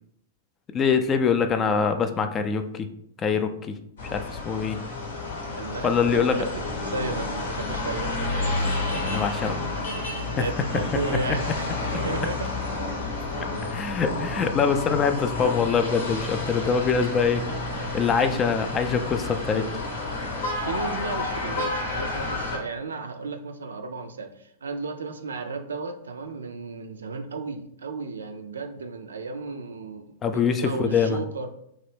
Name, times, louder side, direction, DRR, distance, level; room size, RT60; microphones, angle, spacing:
voice 1, 0.7-2.9 3.2-3.8 4.1-4.8 5.8-6.4 9.1-9.6 10.4-10.5 13.6-17.5 17.7-19.7 30.2-31.2, left 6 dB, 25° left, 7 dB, 0.3 m, -24 dB
sound 1, 4.0-22.6, left 2 dB, 70° left, 0.8 m, -30 dB
voice 2, 5.5-8.3 10.1-12.5 20.5-31.5, right 3 dB, 80° right, 7 dB, 0.3 m, -34 dB
2.9 x 2.1 x 3.2 m, 0.73 s
hypercardioid pair, 105°, 0 cm